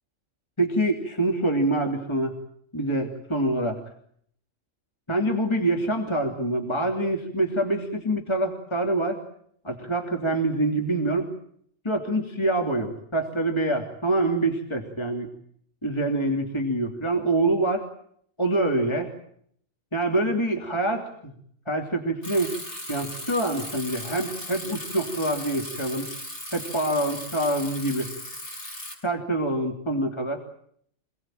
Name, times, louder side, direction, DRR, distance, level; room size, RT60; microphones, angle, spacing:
voice 1, 0.6-2.4 2.7-3.8 5.1-9.2 9.6-11.3 11.8-15.3 15.8-17.8 18.4-19.1 19.9-21.3 21.7-22.5 22.9-26.1 26.5-28.1 29.0-30.4, right 1 dB, 20° left, 2 dB, 3.0 m, -25 dB
Bicycle, 22.2-28.9, left 1 dB, 60° left, 7.6 m, -37 dB
27.5 x 19.5 x 9.1 m, 0.67 s
omnidirectional pair, 1.4 m